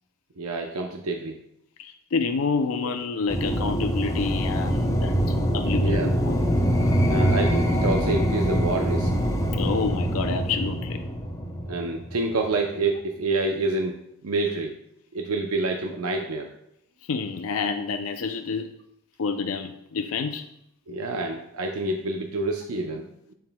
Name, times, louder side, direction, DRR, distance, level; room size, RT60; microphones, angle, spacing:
voice 1, 0.4-1.4 5.8-6.1 7.1-9.2 11.7-14.7 15.1-16.5 20.9-23.1, right 3 dB, 90° right, 3 dB, 0.6 m, -27 dB
voice 2, 1.8-5.2 5.5-6.4 9.6-11.0 17.1-18.7 19.2-20.5, left 4 dB, 80° left, 7 dB, 0.4 m, -28 dB
sound 1, 3.3-12.4, equal, 15° left, 0.6 m, -24 dB
8.0 x 7.3 x 2.2 m, 0.77 s
head